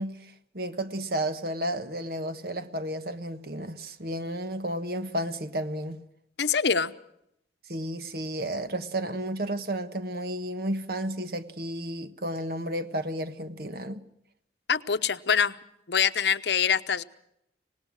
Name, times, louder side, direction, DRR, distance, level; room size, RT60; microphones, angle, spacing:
voice 1, 0.0-6.0 7.7-14.0, right 1 dB, 60° right, 1.4 m, -32 dB
voice 2, 6.4-6.9 14.7-15.6 15.9-17.0, left 7 dB, 75° left, 0.9 m, -24 dB
25.0 x 19.5 x 6.3 m
head